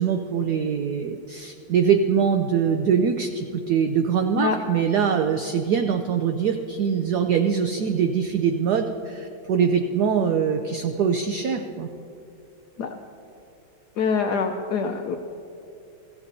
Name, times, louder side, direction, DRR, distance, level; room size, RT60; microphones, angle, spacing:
voice 1, 0.0-11.9, right 7 dB, 70° right, 6 dB, 0.9 m, -23 dB
voice 2, 14.0-15.2, left 5 dB, 65° left, 4 dB, 1.1 m, -25 dB
25.0 x 14.5 x 2.7 m, 2.7 s
omnidirectional pair, 2.3 m